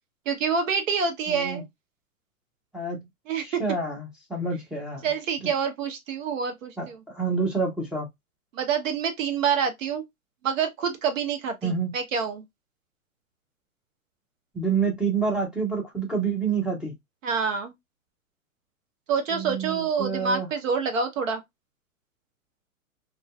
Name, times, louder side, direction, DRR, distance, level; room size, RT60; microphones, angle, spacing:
voice 1, 0.3-1.6 3.3-3.6 5.0-7.0 8.5-10.0 10.4-12.4 17.2-17.7 19.1-21.4, right 6 dB, 60° right, 0.9 m, -27 dB
voice 2, 1.3-1.6 2.7-3.0 3.4-5.1 5.4-5.5 6.8-6.9 7.1-8.1 11.6-11.9 14.5-16.9 19.3-20.5, right 5 dB, ahead, 0.5 m, -28 dB
2.5 x 2.3 x 2.2 m
hypercardioid pair, 115°, 43 cm